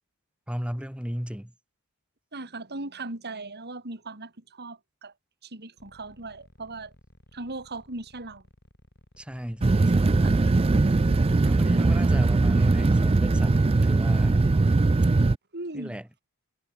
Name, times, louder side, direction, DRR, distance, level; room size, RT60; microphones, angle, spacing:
voice 1, 0.5-1.5 9.2-10.3 11.4-13.6 13.8-14.4 15.7-16.1, equal, 5° right, 1.7 m, -34 dB
voice 2, 2.3-5.1 5.4-6.9 7.3-8.4 9.7-10.4 15.5-16.0, right 2 dB, 50° right, 4.7 m, -38 dB
sound 1, 5.8-12.6, left 1 dB, 50° left, 4.8 m, -56 dB
sound 2, 9.6-15.4, right 3 dB, 25° right, 0.4 m, -21 dB
head